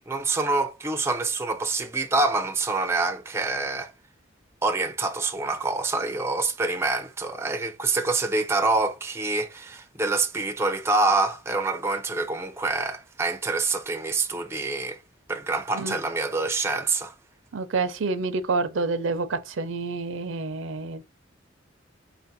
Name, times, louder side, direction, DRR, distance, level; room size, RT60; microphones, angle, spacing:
voice 1, 0.0-3.9 4.6-15.0 15.3-17.1, right 3 dB, 15° right, 0.4 m, -26 dB
voice 2, 17.5-21.0, right 3 dB, 85° right, 0.6 m, -28 dB
4.1 x 2.5 x 4.0 m
head